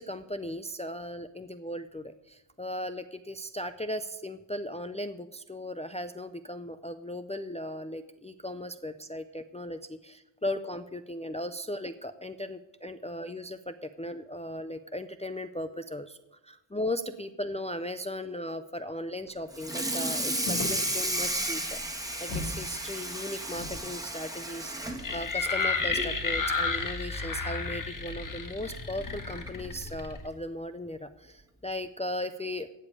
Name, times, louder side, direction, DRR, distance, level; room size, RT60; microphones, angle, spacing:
voice 1, 0.0-16.2 16.4-32.7, left 1 dB, 15° left, 9 dB, 0.4 m, -37 dB
Water tap faucet / Sink (filling or washing), 19.5-26.2 26.6-26.8 27.2-27.3 27.7-27.8 28.9-29.0 29.5-29.7, right 1 dB, 5° right, 1.4 m, -33 dB
sound 1, 20.4-22.6 22.9-23.0 23.5-26.7, left 3 dB, 85° left, 4.6 m, -41 dB
sound 2, 25.0-30.3, left 4 dB, 40° left, 1.6 m, -32 dB
15.5 x 5.2 x 9.6 m, 0.94 s
wide cardioid pair, 140°, 50 cm